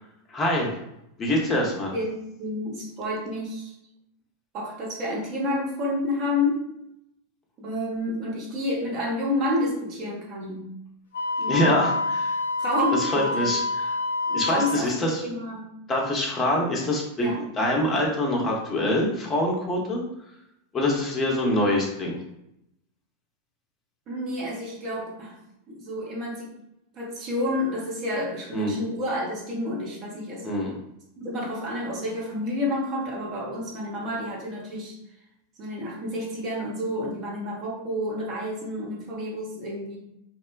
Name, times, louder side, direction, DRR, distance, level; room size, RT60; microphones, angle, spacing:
voice 1, 0.3-0.7 1.2-1.9 11.5-12.4 13.0-13.6 14.3-15.2 15.9-20.0 20.7-22.2 28.5-28.7 30.4-30.7, left 1 dB, 20° left, -1 dB, 0.6 m, -25 dB
voice 2, 1.9-3.7 4.5-6.6 7.6-10.7 11.4-11.9 12.6-13.5 14.3-15.7 17.2-17.4 24.1-25.3 25.7-26.5 26.9-30.6 31.2-35.0 35.6-40.0, left 1 dB, 35° right, -3 dB, 0.7 m, -29 dB
Wind instrument woodwind instrument, 11.1-14.9, left 3 dB, 70° left, 0.4 m, -27 dB
2.9 x 2.1 x 2.2 m, 0.82 s
figure-of-eight pair, 90°, 0 cm